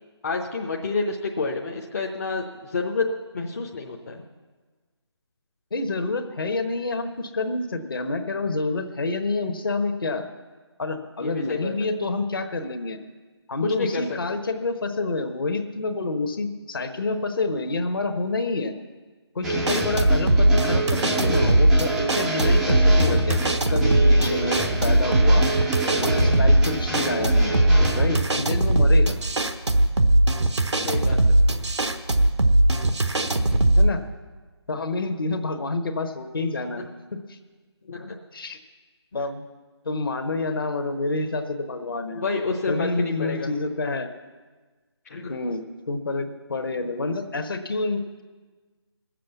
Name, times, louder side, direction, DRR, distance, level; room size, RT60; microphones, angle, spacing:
voice 1, 0.2-3.0 3.3-4.2 11.2-11.9 13.6-14.0 14.3-14.4 19.5-19.6 30.8-31.2 37.9-38.2 42.1-43.5 45.1-45.3, left 3 dB, 35° left, 0 dB, 0.8 m, -29 dB
voice 2, 5.7-10.2 10.8-13.0 13.5-18.7 19.3-23.4 23.7-25.4 26.0-27.5 27.9-29.1 33.7-34.0 34.7-36.9 37.1-37.4 38.3-38.6 39.1-39.5 39.8-42.2 42.7-44.1 45.3-48.2, left 3 dB, 55° left, 7 dB, 1.2 m, -28 dB
sound 1, 19.4-28.2, right 1 dB, ahead, 0.5 m, -26 dB
sound 2, 19.6-33.9, right 1 dB, 85° right, 1.1 m, -19 dB
19.0 x 7.6 x 7.1 m, 1.4 s
figure-of-eight pair, 155°, 14 cm